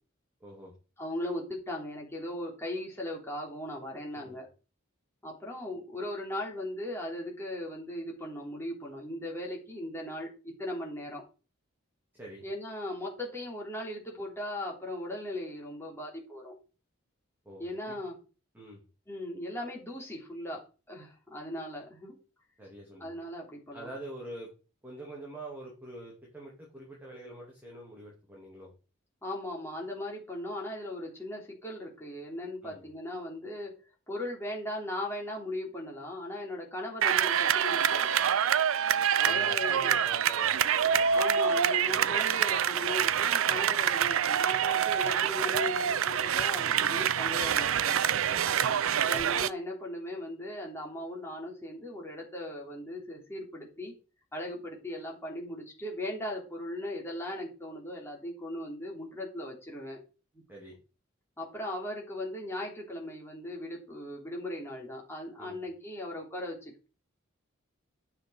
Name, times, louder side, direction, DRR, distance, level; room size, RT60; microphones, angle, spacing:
voice 1, 0.4-0.7 4.1-4.4 12.1-12.4 17.4-18.0 18.5-18.8 22.6-23.1 23.7-24.5 24.8-28.7 32.6-32.8 39.2-41.1 46.5-46.9 48.0-48.5 60.5-60.8 65.4-65.6, right 1 dB, 10° right, -3 dB, 2.7 m, -45 dB
voice 2, 1.0-4.5 5.2-11.2 12.4-16.5 17.6-18.1 19.1-20.6 20.9-22.1 23.0-23.9 29.2-33.7 34.1-38.1 39.2-40.0 41.1-48.0 49.0-53.9 54.3-60.0 61.4-66.9, left 1 dB, 10° left, -1 dB, 3.2 m, -38 dB
sound 1, 37.0-49.5, right 8 dB, 85° right, 0.5 m, -26 dB
9.8 x 6.5 x 4.7 m, 0.34 s
head